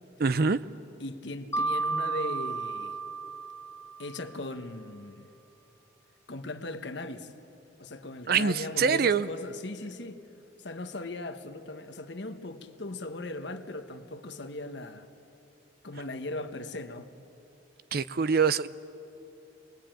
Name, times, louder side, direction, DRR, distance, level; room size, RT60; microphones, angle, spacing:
voice 1, 0.2-0.6 8.3-9.3 17.9-18.7, right 5 dB, 50° right, 0.5 m, -24 dB
voice 2, 1.0-3.0 4.0-5.3 6.3-7.3 7.8-10.2 10.6-15.1 15.8-17.1, left 2 dB, 65° left, 1.2 m, -38 dB
Mallet percussion, 1.5-4.3, right 3 dB, 15° left, 0.8 m, -32 dB
26.0 x 22.0 x 9.0 m
head